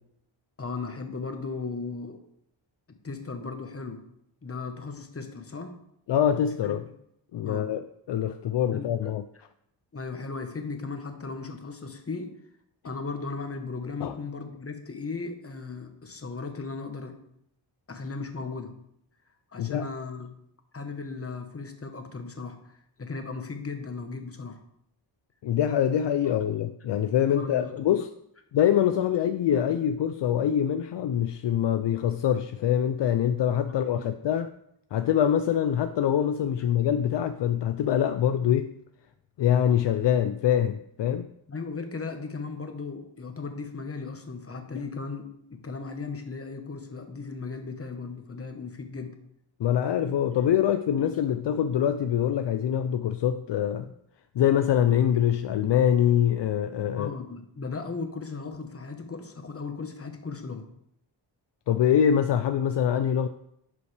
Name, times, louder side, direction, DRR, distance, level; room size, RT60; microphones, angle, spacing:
voice 1, 0.6-2.2 3.0-4.0 4.4-5.7 6.6-6.8 7.4-7.7 8.7-8.9 9.9-12.3 12.8-17.1 17.9-18.7 19.5-20.3 20.7-24.6 27.3-27.7 33.6-34.1 41.5-45.2 45.5-49.1 51.0-51.2 56.9-60.6, left 4 dB, 30° left, 5 dB, 1.2 m, -36 dB
voice 2, 6.1-6.9 7.3-9.2 14.0-14.2 19.6-19.9 25.4-28.1 28.5-34.5 34.9-38.7 39.4-41.3 44.7-44.8 49.6-53.9 54.3-57.2 61.7-63.3, left 9 dB, 65° left, 9 dB, 0.5 m, -24 dB
11.0 x 5.4 x 3.4 m, 0.75 s
cardioid pair, 85°, 47 cm